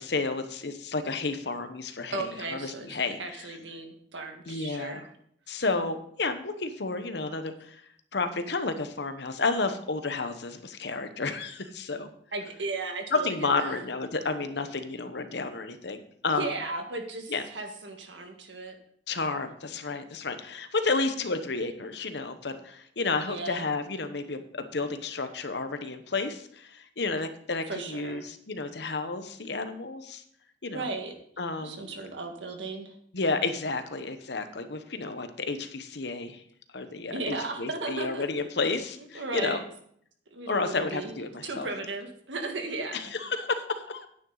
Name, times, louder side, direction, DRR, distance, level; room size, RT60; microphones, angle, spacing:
voice 1, 0.0-3.2 4.5-5.0 5.5-7.8 8.1-12.1 13.1-16.5 17.3-17.4 19.1-30.2 30.6-30.9 31.4-31.8 33.1-36.4 36.7-39.6 40.5-41.7 42.9-44.1, left 3 dB, 65° left, 9 dB, 1.0 m, -31 dB
voice 2, 2.1-5.1 12.3-13.8 16.3-18.8 23.3-23.7 27.7-28.2 30.7-31.1 31.6-33.0 37.1-38.2 39.1-39.6 40.3-41.2 41.4-43.1, right 3 dB, 85° right, 4 dB, 1.7 m, -36 dB
9.8 x 9.4 x 4.0 m, 0.65 s
head